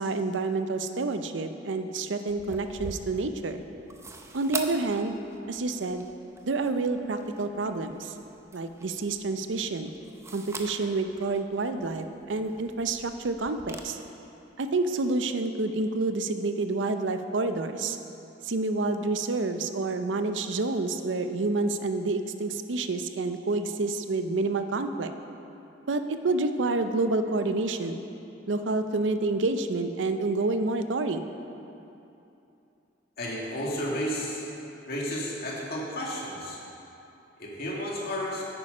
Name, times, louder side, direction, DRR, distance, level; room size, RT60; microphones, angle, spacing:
voice 1, 0.0-3.6 4.3-5.2 5.5-6.1 6.4-8.1 8.5-9.9 10.3-14.0 14.6-18.0 18.5-25.1 25.9-28.0 28.5-31.3, right 3 dB, 85° right, 8 dB, 0.6 m, -28 dB
sound 1, 2.3-13.8, right 3 dB, 15° right, 0.6 m, -44 dB
voice 2, 33.2-34.4 34.9-36.6 37.4-38.4, equal, 55° left, -3 dB, 2.1 m, -32 dB
9.8 x 8.7 x 5.4 m, 2.8 s
head